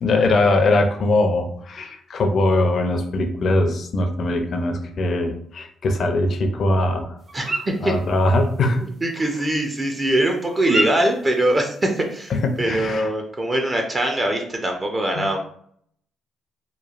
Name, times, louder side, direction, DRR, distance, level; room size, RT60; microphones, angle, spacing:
voice 1, 0.0-7.2 7.8-8.8 12.3-13.1 15.2-15.3, left 2 dB, 55° left, 5 dB, 0.4 m, -21 dB
sound 1, 7.2-12.6, equal, 45° right, 0.9 m, -31 dB
voice 2, 7.3-7.9 8.8-12.3 12.6-15.4, right 1 dB, 30° right, 3 dB, 0.5 m, -22 dB
3.0 x 2.2 x 2.4 m, 0.63 s
cardioid pair, 90°, 0 cm